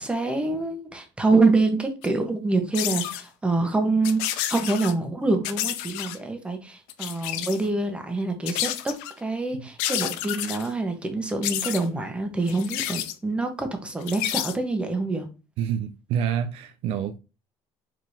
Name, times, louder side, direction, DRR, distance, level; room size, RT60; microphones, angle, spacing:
voice 1, 0.0-15.3, right 3 dB, 10° right, 1.1 m, -26 dB
sound 1, 2.0-2.1 2.7-3.2 4.0-4.9 5.4-6.2 6.9-7.7 8.5-9.1 9.8-10.7 11.4-11.8 12.5-13.1 14.0-14.6, left 13 dB, 90° left, 0.5 m, -30 dB
voice 2, 15.6-17.2, right 8 dB, 65° right, 0.5 m, -27 dB
4.8 x 3.7 x 2.8 m
cardioid pair, 120°, 10 cm